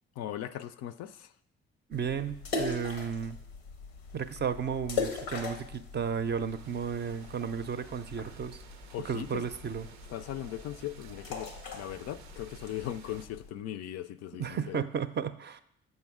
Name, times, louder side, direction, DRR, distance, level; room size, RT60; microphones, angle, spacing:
voice 1, 0.2-1.3 8.9-9.4 10.1-14.8, left 12 dB, 55° left, 0.4 m, -39 dB
sound 1, 1.9-13.5, left 4 dB, 90° left, 0.7 m, -40 dB
voice 2, 1.9-3.4 4.1-8.6 9.0-9.9 14.4-15.6, right 7 dB, 35° right, 0.5 m, -33 dB
sound 2, 6.2-13.3, right 7 dB, 85° right, 0.5 m, -53 dB
7.1 x 5.3 x 3.6 m
hypercardioid pair, 45°, 31 cm